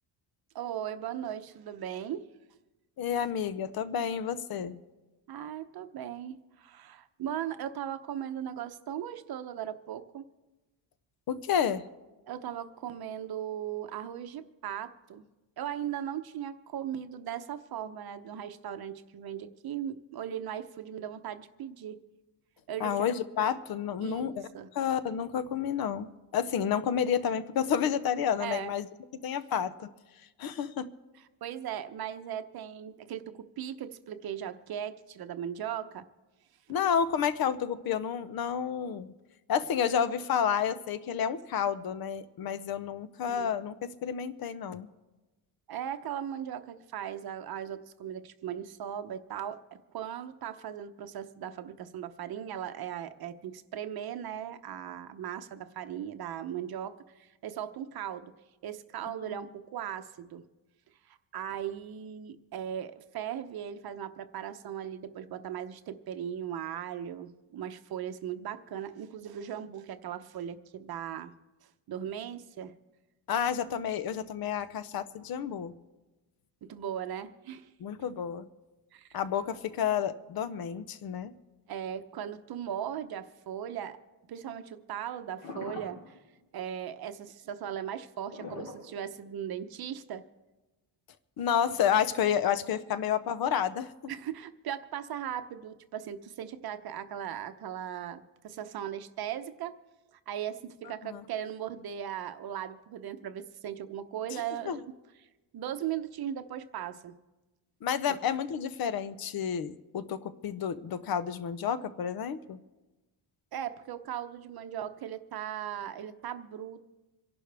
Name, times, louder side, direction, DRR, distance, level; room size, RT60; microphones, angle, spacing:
voice 1, 0.5-2.3 5.3-10.2 12.3-15.2 15.6-22.0 22.7-23.1 24.0-24.7 28.4-28.7 31.4-36.0 36.7-36.8 43.2-43.5 45.7-58.3 58.6-60.4 61.0-71.3 71.6-72.7 76.6-77.7 78.9-79.1 81.7-84.0 84.3-86.2 86.5-90.2 94.1-99.8 100.1-104.9 105.5-107.1 108.1-108.2 113.5-116.8, right 10 dB, 50° right, 9 dB, 0.8 m, -38 dB
voice 2, 3.0-4.8 11.3-11.8 22.8-24.5 24.7-28.9 29.2-29.9 30.4-30.9 36.7-39.1 39.5-44.9 59.3-59.4 73.3-75.7 77.8-78.5 79.1-81.3 91.4-94.1 101.0-101.2 104.7-104.8 107.8-112.6, left 8 dB, 50° left, 14 dB, 0.7 m, -30 dB
sound 1, 85.4-86.2 88.3-89.4 90.1-90.2, left 3 dB, 70° left, 3.1 m, -42 dB
27.0 x 11.5 x 3.4 m, 1.1 s
cardioid pair, 165°, 48 cm